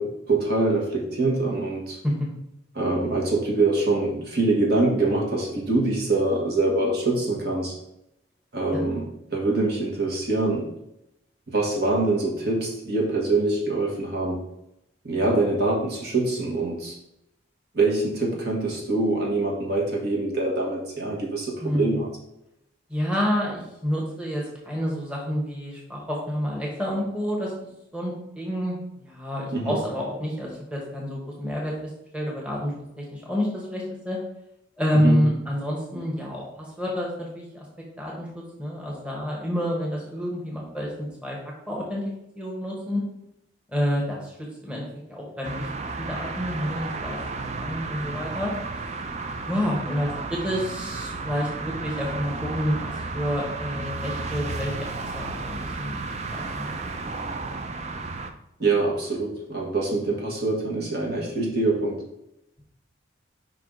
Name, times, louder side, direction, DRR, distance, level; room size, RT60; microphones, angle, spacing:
voice 1, 0.0-2.0 2.7-7.7 8.5-10.7 11.5-14.4 15.0-17.0 17.7-22.1 29.5-29.8 35.0-35.2 58.6-62.0, right 2 dB, 55° right, -2 dB, 1.4 m, -24 dB
voice 2, 21.6-22.0 22.9-31.7 32.1-34.2 34.8-37.6 38.0-41.4 41.7-43.0 43.7-44.4 44.6-45.7 46.0-48.5 49.5-56.0 56.3-56.7, equal, 5° right, -3 dB, 1.1 m, -29 dB
sound 1, 45.4-58.3, right 3 dB, 35° right, 0.4 m, -33 dB
5.3 x 4.7 x 3.7 m, 0.83 s
head